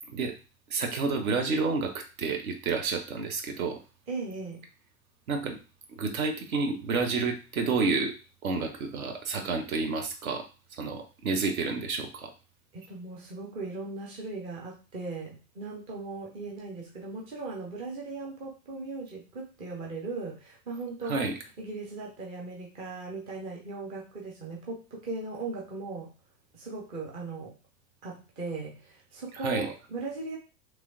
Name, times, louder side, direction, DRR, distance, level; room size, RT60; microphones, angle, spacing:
voice 1, 0.7-3.8 5.3-5.6 5.9-8.1 8.4-10.5 10.7-12.3 21.0-21.3 29.4-29.7, right 4 dB, 60° right, 4 dB, 0.7 m, -30 dB
voice 2, 4.1-4.6 12.7-21.3 21.6-26.1 26.5-27.6 28.0-30.4, right 3 dB, 15° right, -2 dB, 0.3 m, -38 dB
3.1 x 3.0 x 2.5 m, 0.32 s
figure-of-eight pair, 85°, 47 cm